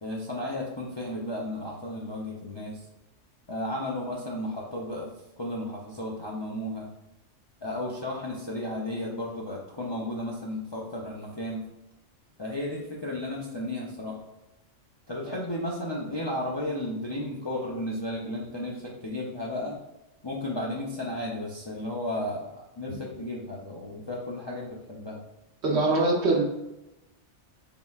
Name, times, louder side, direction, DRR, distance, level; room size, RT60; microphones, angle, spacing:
voice 1, 0.0-2.8 3.5-5.1 5.4-6.9 7.6-11.6 12.4-14.2 15.1-19.8 20.2-25.2, left 1 dB, 40° left, -4 dB, 0.4 m, -34 dB
voice 2, 25.6-26.4, right 2 dB, 60° right, -1 dB, 1.1 m, -23 dB
4.2 x 3.7 x 2.3 m, 0.93 s
omnidirectional pair, 1.3 m